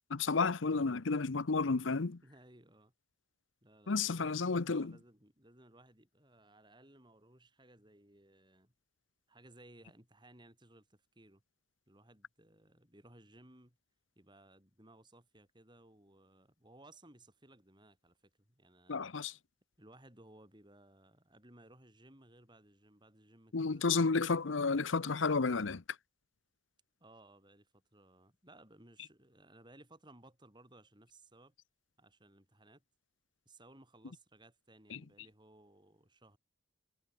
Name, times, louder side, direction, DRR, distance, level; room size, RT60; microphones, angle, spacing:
voice 1, 0.1-2.2 3.9-4.9 18.9-19.3 23.5-25.8 34.9-35.0, left 4 dB, 80° left, 0.8 m, -31 dB
voice 2, 2.2-2.9 3.6-8.7 9.3-11.4 11.9-13.8 14.2-19.0 19.8-24.1 27.0-31.5 32.0-32.8 33.5-36.4, right 1 dB, 25° right, 7.0 m, -61 dB
head